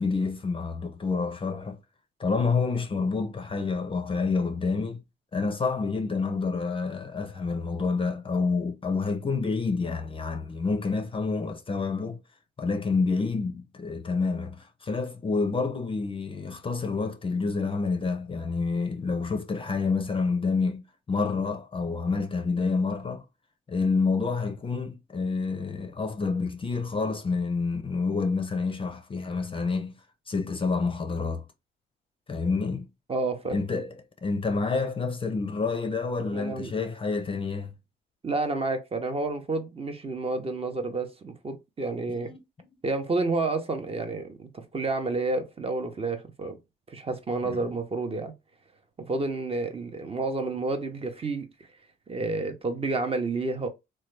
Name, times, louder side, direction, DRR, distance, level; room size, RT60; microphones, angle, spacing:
voice 1, 0.0-1.8 2.2-5.0 5.3-12.2 12.6-23.2 23.7-29.9 30.3-31.4 32.3-32.9 33.5-33.9 34.2-37.7 42.1-42.7 47.4-47.6, left 4 dB, 25° left, 0.5 m, -28 dB
voice 2, 33.1-33.6 36.3-36.7 38.2-42.3 42.8-46.6 46.9-48.3 49.0-51.5 52.1-53.7, right 3 dB, 30° right, 0.7 m, -30 dB
3.1 x 2.2 x 3.1 m
cardioid pair, 90°, 20 cm